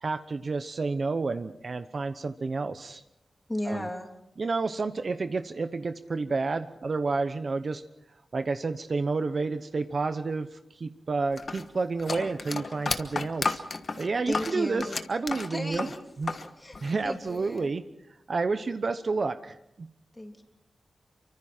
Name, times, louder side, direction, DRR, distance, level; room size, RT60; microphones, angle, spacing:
voice 1, 0.0-3.0 3.7-3.9 4.4-7.8 8.3-13.6 14.0-15.9 16.2-16.3 16.8-17.8 18.3-19.9, right 4 dB, 45° right, 10 dB, 0.9 m, -30 dB
voice 2, 3.5-4.1 14.3-14.9 15.5-16.0 16.3-16.8 17.0-17.7 20.1-20.4, left 1 dB, 15° left, 3 dB, 3.1 m, -34 dB
sound 1, 11.4-16.5 16.7-17.6, left 4 dB, 45° left, 1.3 m, -32 dB
28.5 x 24.5 x 4.4 m, 0.80 s
wide cardioid pair, 160°, 0 cm